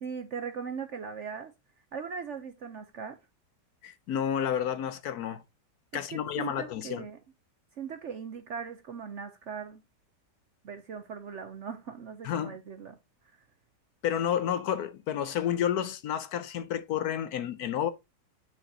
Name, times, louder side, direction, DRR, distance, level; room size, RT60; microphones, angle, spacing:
voice 1, 0.0-1.5 1.9-3.2 5.9-7.2 7.8-9.8 10.6-13.0 13.2-13.4, right 6 dB, 60° right, 0.8 m, -39 dB
voice 2, 3.8-5.4 5.9-7.1 12.2-12.6 14.0-17.9, left 9 dB, 65° left, 1.1 m, -30 dB
9.9 x 5.0 x 2.7 m
omnidirectional pair, 1.9 m